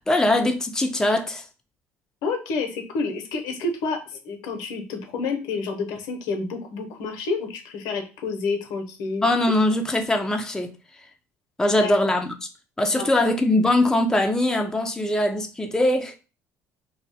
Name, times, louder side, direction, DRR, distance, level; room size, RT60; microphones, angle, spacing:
voice 1, 0.0-1.4 9.2-10.7 11.6-12.3 12.8-16.2, left 1 dB, 10° left, 0.4 m, -21 dB
voice 2, 2.2-9.3 11.8-11.9 13.0-13.1, left 4 dB, 70° left, 0.6 m, -29 dB
2.3 x 2.1 x 2.7 m
hypercardioid pair, 65°, 7 cm